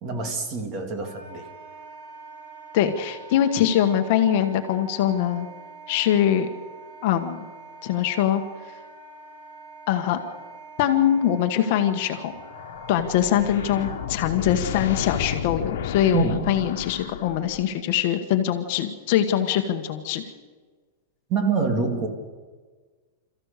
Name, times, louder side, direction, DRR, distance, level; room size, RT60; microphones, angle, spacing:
voice 1, 0.0-1.5 16.1-16.6 21.3-22.1, right 4 dB, 25° right, 5 dB, 2.1 m, -26 dB
Wind instrument woodwind instrument, 1.0-14.1, right 3 dB, 55° right, 7.5 m, -44 dB
voice 2, 2.7-5.5 5.9-6.5 7.0-7.4 7.8-8.4 9.9-10.2 10.8-12.3 12.9-20.2, left 10 dB, 40° left, 6 dB, 1.3 m, -23 dB
sound 1, 12.3-17.8, left 9 dB, 70° left, 1.5 m, -32 dB
27.5 x 14.5 x 6.7 m, 1.5 s
supercardioid pair, 175°, 0 cm